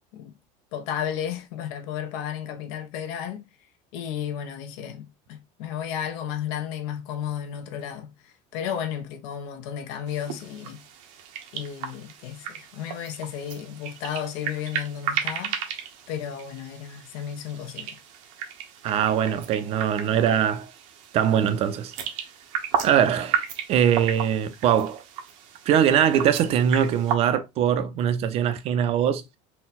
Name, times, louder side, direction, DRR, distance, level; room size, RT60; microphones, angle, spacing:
voice 1, 0.7-3.5 3.9-10.8 11.5-15.6 16.1-18.0, left 9 dB, 70° left, 0.7 m, -33 dB
sound 1, 10.1-27.2, right 8 dB, 80° right, 1.0 m, -34 dB
voice 2, 18.8-20.7 21.1-21.9 22.8-25.0 25.7-29.2, right 9 dB, 35° right, 0.5 m, -22 dB
4.0 x 2.2 x 4.1 m
cardioid pair, 160°, 17 cm